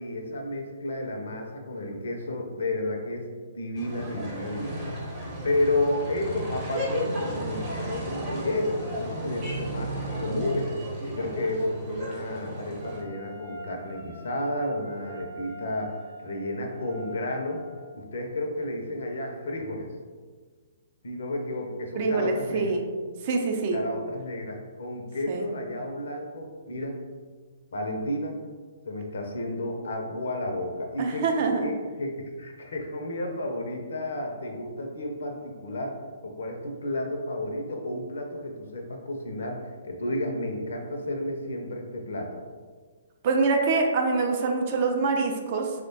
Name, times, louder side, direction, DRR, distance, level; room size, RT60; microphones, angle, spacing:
voice 1, 0.0-3.3 3.5-4.9 5.4-17.6 17.9-19.9 21.0-22.7 23.7-27.0 27.7-28.4 28.9-31.3 31.6-42.4, left 1 dB, 65° left, 3 dB, 0.5 m, -32 dB
sound 1, 3.7-13.0, right 1 dB, 25° right, 0.8 m, -34 dB
Wind instrument woodwind instrument, 12.8-18.0, left 2 dB, 65° right, 0.8 m, -45 dB
voice 2, 22.0-22.9 23.2-23.8 25.3-25.5 31.0-31.7 43.2-45.7, right 4 dB, 40° right, 2 dB, 0.4 m, -25 dB
3.0 x 2.1 x 2.7 m, 1.5 s
figure-of-eight pair, 125°, 0 cm